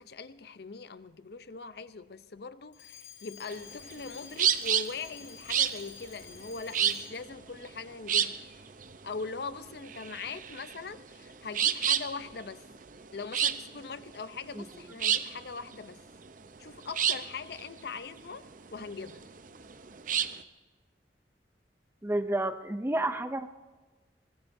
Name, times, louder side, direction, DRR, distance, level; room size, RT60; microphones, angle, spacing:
voice 1, 0.0-8.4 9.0-12.6 13.1-16.0 16.6-19.2 22.9-23.2, left 4 dB, 65° left, 0.7 m, -41 dB
Alarm, 2.7-7.4, left 10 dB, 90° left, 1.7 m, -50 dB
sound 1, 3.5-20.4, right 9 dB, 50° right, 0.7 m, -31 dB
voice 2, 22.0-23.5, right 1 dB, 15° right, 0.5 m, -30 dB
23.0 x 19.0 x 2.7 m
head